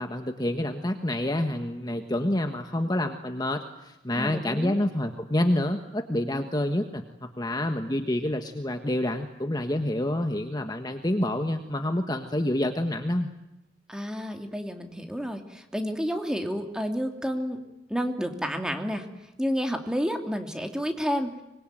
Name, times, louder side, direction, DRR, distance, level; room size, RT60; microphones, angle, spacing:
voice 1, 0.0-13.3, left 1 dB, 20° left, 6 dB, 1.4 m, -28 dB
voice 2, 4.2-4.8 6.3-6.4 13.9-17.6 17.9-19.1 19.4-21.3, equal, 5° right, 5 dB, 2.7 m, -30 dB
25.0 x 22.0 x 9.2 m, 0.93 s
head